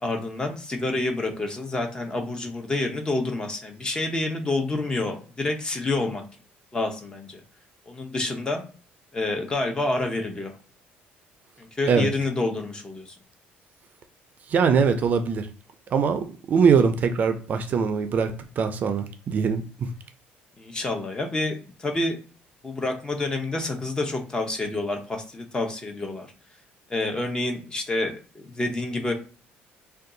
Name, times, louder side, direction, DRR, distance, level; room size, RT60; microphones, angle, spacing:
voice 1, 0.0-6.2 6.7-7.4 7.9-8.6 9.1-10.5 11.6-13.2 20.6-22.2 22.6-26.3 26.9-29.1, left 2 dB, 20° left, 4 dB, 0.6 m, -28 dB
voice 2, 14.5-15.5 15.9-19.9, right 6 dB, 45° right, 8 dB, 0.4 m, -22 dB
2.6 x 2.3 x 3.7 m, 0.37 s
cardioid pair, 125°, 4 cm